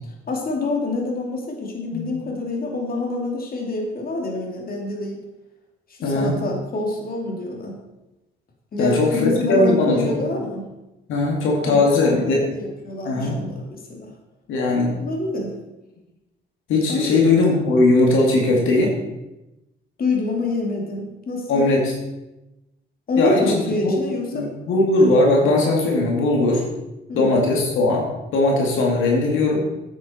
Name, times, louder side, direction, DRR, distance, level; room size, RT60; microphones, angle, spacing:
voice 1, 0.3-5.2 5.9-7.8 8.7-10.6 11.6-14.1 15.0-15.5 16.9-17.2 20.0-21.7 23.1-24.5 27.1-27.5, left 2 dB, 45° left, 0 dB, 2.6 m, -26 dB
voice 2, 6.0-6.4 8.8-10.1 11.1-12.4 13.0-13.4 14.5-14.9 16.7-19.0 21.5-21.9 23.2-24.0 24.3-26.6 27.1-28.1 28.3-29.7, left 2 dB, 85° left, -1 dB, 2.2 m, -19 dB
9.1 x 8.8 x 4.3 m, 0.98 s
cardioid pair, 90°, 20 cm